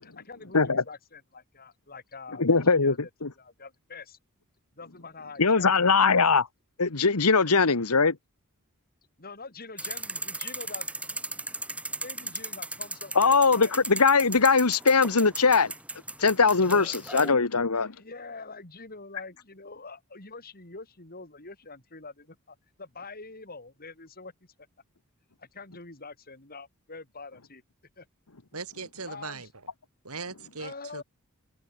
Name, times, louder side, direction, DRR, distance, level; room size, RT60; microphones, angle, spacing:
voice 1, 0.0-3.1 3.3-4.2 4.8-5.7 9.2-11.2 12.0-13.8 17.8-24.3 25.4-27.6 28.0-28.1 29.1-29.5 30.6-31.0, left 3 dB, 40° left, 4.8 m, -45 dB
voice 2, 2.4-2.9 3.2-3.3 5.4-6.5 6.8-8.1 13.1-15.7 16.2-17.9, left 4 dB, 80° left, 1.5 m, -21 dB
sound 1, 9.8-17.3, right 2 dB, 5° right, 1.9 m, -37 dB
voice 3, 28.5-29.5 30.0-31.0, right 4 dB, 75° right, 4.7 m, -39 dB
head